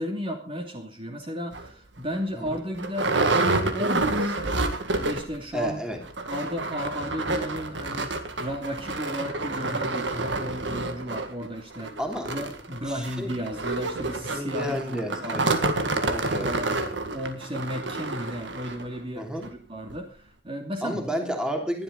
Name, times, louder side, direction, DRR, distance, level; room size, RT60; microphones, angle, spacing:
voice 1, 0.0-4.6 5.0-5.8 6.2-11.9 12.3-15.6 16.4-16.8 17.1-21.1, equal, 30° right, 3 dB, 2.7 m, -34 dB
sound 1, 1.5-1.7 2.2-2.3 2.5-5.4 5.7-5.8 6.1-18.9 19.4-19.5 19.9-20.0, right 2 dB, 75° right, 2.0 m, -28 dB
voice 2, 5.5-6.0 10.1-10.5 12.0-12.3 12.8-13.3 14.3-15.4 16.1-16.5 19.1-19.5 20.8-21.8, equal, 5° right, 3 dB, 3.1 m, -31 dB
21.0 x 12.0 x 4.0 m, 0.37 s
head